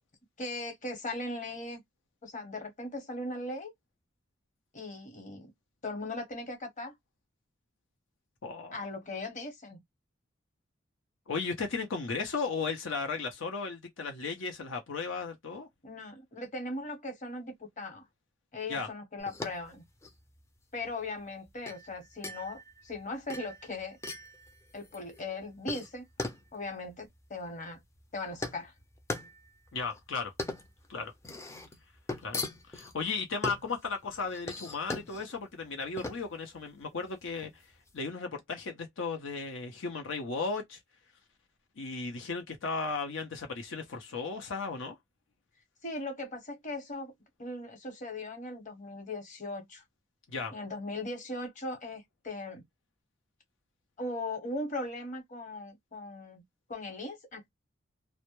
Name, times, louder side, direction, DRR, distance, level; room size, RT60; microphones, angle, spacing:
voice 1, 0.4-1.8 2.2-3.7 4.7-5.5 5.8-6.9 8.7-9.8 15.8-18.0 18.5-19.8 20.7-24.0 24.7-26.0 26.5-27.8 28.1-28.7 45.8-47.1 47.4-49.8 50.5-52.6 54.0-56.4 56.7-57.5, left 2 dB, 40° left, 0.9 m, -38 dB
voice 2, 8.4-8.8 11.3-15.7 18.7-18.9 29.7-30.3 30.9-31.1 32.2-37.6 37.9-40.8 41.8-45.0 50.3-50.5, left 4 dB, 85° left, 0.6 m, -35 dB
sound 1, 19.2-38.0, left 2 dB, 15° left, 0.4 m, -41 dB
2.1 x 2.0 x 2.9 m
head